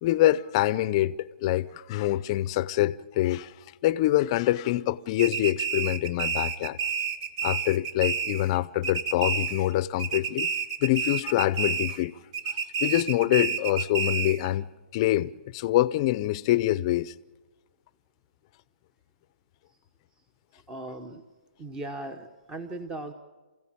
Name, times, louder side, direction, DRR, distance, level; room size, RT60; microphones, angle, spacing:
voice 1, 0.0-3.5 3.8-6.8 7.4-10.5 10.8-12.1 12.8-17.1, left 14 dB, 30° left, 0.6 m, -25 dB
sound 1, 5.2-8.6 8.8-9.7 10.0-12.0 12.3-14.5, right 6 dB, 35° right, 1.2 m, -30 dB
voice 2, 20.7-21.2 21.6-23.1, right 2 dB, 10° right, 1.0 m, -38 dB
28.0 x 15.5 x 8.6 m
hypercardioid pair, 155°, 6 cm